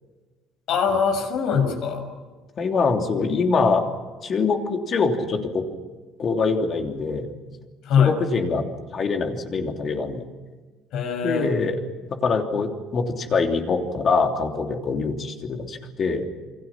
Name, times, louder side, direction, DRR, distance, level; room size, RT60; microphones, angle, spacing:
voice 1, 0.7-2.1 7.8-8.1 10.9-11.5, left 7 dB, 60° left, 6 dB, 6.1 m, -22 dB
voice 2, 2.6-3.9 4.2-5.6 6.2-7.3 8.0-8.6 8.9-10.2 11.2-11.8 12.1-16.3, left 4 dB, 35° left, 3 dB, 3.1 m, -24 dB
28.0 x 25.0 x 6.0 m, 1.3 s
cardioid pair, 160°, 0 cm